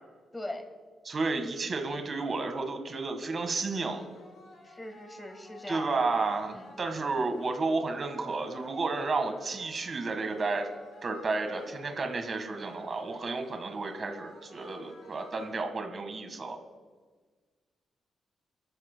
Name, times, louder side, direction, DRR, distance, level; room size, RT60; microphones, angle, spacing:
voice 1, 0.3-0.7 4.6-5.9 6.5-6.7, left 1 dB, 10° left, 6 dB, 1.4 m, -40 dB
voice 2, 1.0-4.0 5.7-10.7 11.0-16.6, right 3 dB, 35° right, 5 dB, 1.5 m, -32 dB
sound 1, 3.9-15.9, left 2 dB, 65° left, 4.4 m, -54 dB
25.5 x 13.0 x 2.2 m, 1.5 s
wide cardioid pair, 150°, 0 cm